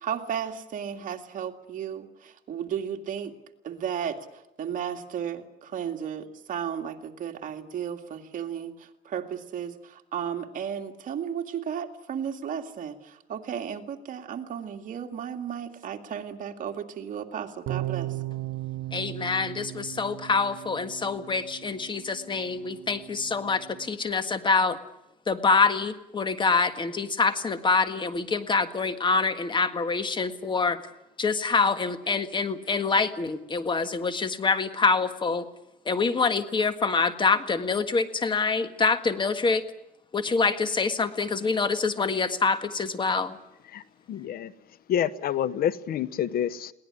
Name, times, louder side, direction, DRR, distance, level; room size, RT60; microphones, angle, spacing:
voice 1, 0.0-3.3 3.6-4.2 4.6-8.7 9.1-18.1, right 8 dB, 50° right, 5 dB, 2.2 m, -34 dB
sound 1, 17.7-23.9, right 15 dB, 75° right, 1.5 m, -37 dB
voice 2, 18.9-24.8 25.3-30.8 31.2-35.4 35.8-39.6 40.1-43.3, left 4 dB, 30° left, 10 dB, 1.7 m, -25 dB
voice 3, 44.1-44.5 44.9-46.7, left 10 dB, 60° left, 17 dB, 0.9 m, -27 dB
22.0 x 18.0 x 9.8 m, 0.86 s
cardioid pair, 110°, 17 cm